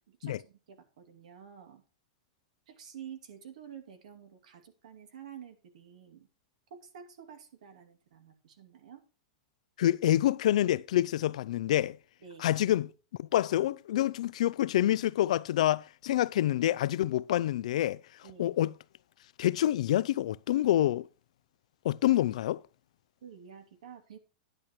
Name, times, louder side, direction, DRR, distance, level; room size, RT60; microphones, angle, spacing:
voice 1, 0.1-1.8 2.7-6.3 6.7-9.0 12.2-12.5 18.2-18.5 23.2-24.2, right 8 dB, 80° right, 2.6 m, -49 dB
voice 2, 9.8-12.0 12.4-12.9 13.3-18.0 18.4-18.7 19.4-21.1 21.8-22.6, left 13 dB, 70° left, 0.4 m, -27 dB
10.5 x 10.0 x 3.1 m
supercardioid pair, 170°, 4 cm